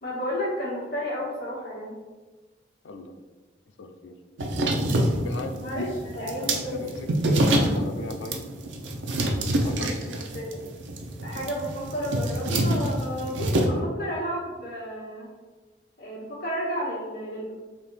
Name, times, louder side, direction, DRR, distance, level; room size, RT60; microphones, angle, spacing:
voice 1, 0.0-1.9 5.6-5.9 6.1-6.8 10.3-10.7 11.2-15.3 16.0-17.5, equal, 55° left, -6 dB, 1.5 m, -32 dB
voice 2, 3.8-4.1 5.0-5.9 6.7-8.4 9.6-10.3, left 2 dB, 85° left, 6 dB, 0.4 m, -37 dB
sound 1, 4.4-13.7, right 1 dB, 80° right, 0.6 m, -26 dB
3.5 x 2.9 x 4.0 m, 1.3 s
head